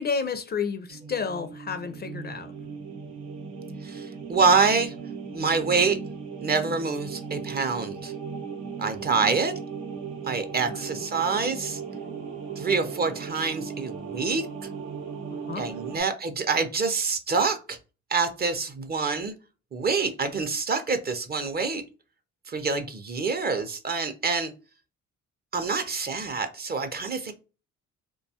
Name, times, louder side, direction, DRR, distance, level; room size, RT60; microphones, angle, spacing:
voice 1, 0.0-2.5 10.7-10.8 15.3-15.7, left 5 dB, 35° left, 0.4 m, -31 dB
sound 1, 0.9-16.0, right 5 dB, 85° right, 0.7 m, -37 dB
voice 2, 3.8-4.9 5.3-6.0 6.4-8.1 8.8-9.5 10.2-11.8 12.6-14.7 15.6-17.8 18.1-19.3 19.7-21.8 22.5-24.5 25.5-27.3, right 4 dB, 30° right, 0.5 m, -26 dB
2.6 x 2.2 x 2.7 m
cardioid pair, 90°, 30 cm